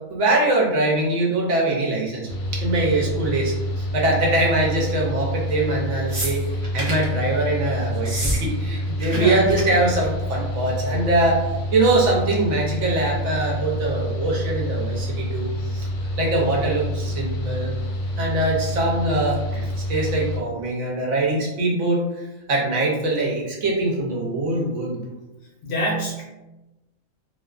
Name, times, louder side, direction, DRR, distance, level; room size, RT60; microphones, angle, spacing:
voice 1, 0.1-6.4 6.7-11.4 11.7-15.9 16.2-17.7 18.2-25.0, right 2 dB, 70° right, -2 dB, 0.9 m, -23 dB
Mechanical fan, 2.3-20.4, equal, 85° left, 1.0 m, -27 dB
sound 1, 6.1-7.1 8.0-8.4 8.7-9.2 9.5-9.6 9.9-10.2 11.2-11.3, right 1 dB, 40° right, 0.6 m, -28 dB
voice 2, 25.6-26.2, equal, 60° left, -4 dB, 0.8 m, -25 dB
2.3 x 2.3 x 2.3 m, 1.0 s
omnidirectional pair, 1.4 m